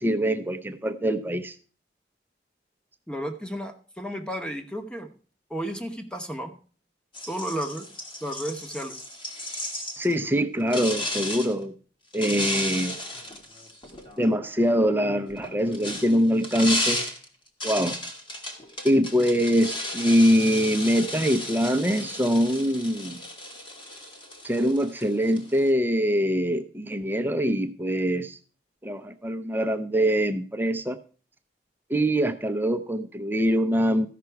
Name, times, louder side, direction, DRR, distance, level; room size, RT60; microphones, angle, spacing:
voice 1, 0.0-1.5 10.0-11.7 12.1-13.0 14.2-17.1 17.6-18.0 18.8-23.2 24.4-28.4 28.8-31.0 31.9-34.1, equal, 10° right, 9 dB, 0.5 m, -23 dB
voice 2, 3.1-5.1 5.5-6.5 7.3-7.9 8.2-9.0, equal, 5° left, 6 dB, 1.0 m, -33 dB
sound 1, 7.1-10.2 10.7-11.5 12.1-14.3 15.3-25.7, left 1 dB, 30° left, 1.6 m, -34 dB
14.0 x 5.9 x 4.6 m, 0.40 s
head